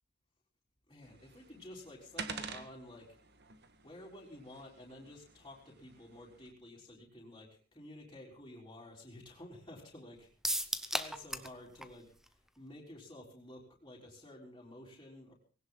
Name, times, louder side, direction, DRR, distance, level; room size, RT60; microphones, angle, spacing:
voice 1, 0.9-3.2 3.8-15.3, left 1 dB, 20° left, -4 dB, 3.8 m, -52 dB
sound 1, 1.0-6.5, right 5 dB, 50° right, 1.6 m, -49 dB
sound 2, 10.4-11.6 11.8-11.9 12.3-12.4, equal, ahead, 0.8 m, -34 dB
19.0 x 17.5 x 3.9 m, 0.40 s
head